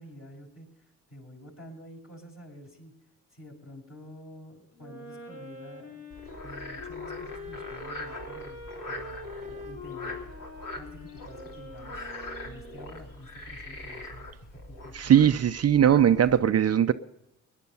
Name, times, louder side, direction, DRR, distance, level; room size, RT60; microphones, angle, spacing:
voice 1, 0.0-2.9 3.3-6.1 6.4-10.2 10.7-12.1 12.4-15.1, equal, 35° left, 1 dB, 6.0 m, -48 dB
Wind instrument woodwind instrument, 4.7-13.1, left 2 dB, 85° left, 3.4 m, -44 dB
Frog, 6.1-16.4, left 2 dB, 60° left, 3.5 m, -42 dB
voice 2, 14.9-16.9, right 9 dB, 40° right, 10 dB, 0.6 m, -20 dB
19.0 x 10.5 x 5.6 m, 0.85 s
supercardioid pair, 55°, 37 cm